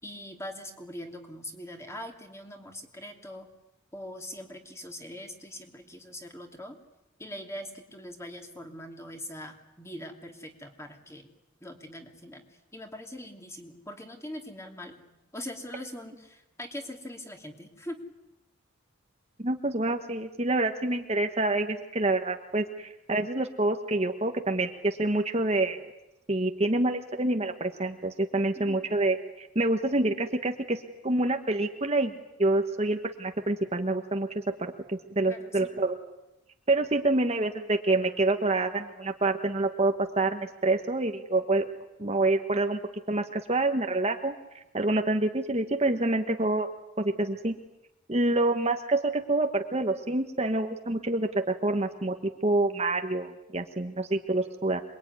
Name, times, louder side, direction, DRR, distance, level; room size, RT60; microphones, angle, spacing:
voice 1, 0.0-3.5 3.9-6.8 7.2-11.3 11.6-12.4 12.7-15.0 15.3-18.0 20.0-20.1 28.6-28.8 35.3-35.7, left 1 dB, 15° left, 3 dB, 3.0 m, -42 dB
voice 2, 19.4-25.8 26.3-32.1 32.4-36.0 36.7-41.6 42.0-42.8 43.1-44.3 44.7-46.7 47.0-47.5 48.1-54.8, right 2 dB, 30° right, 5 dB, 1.3 m, -27 dB
27.0 x 22.0 x 9.6 m, 0.93 s
head